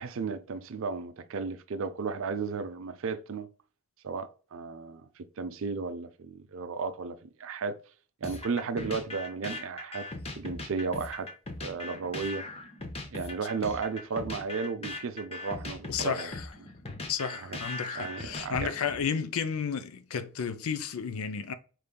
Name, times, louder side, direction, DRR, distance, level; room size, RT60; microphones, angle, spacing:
voice 1, 0.0-3.5 4.0-7.8 8.2-10.1 10.4-11.3 11.6-12.5 13.1-16.3 17.4-17.6 17.9-18.7, right 4 dB, 60° right, 0.5 m, -34 dB
sound 1, 8.2-19.0, left 2 dB, 25° left, 0.7 m, -39 dB
voice 2, 15.9-16.5 17.0-21.5, left 6 dB, 70° left, 0.5 m, -32 dB
5.2 x 3.2 x 2.2 m
head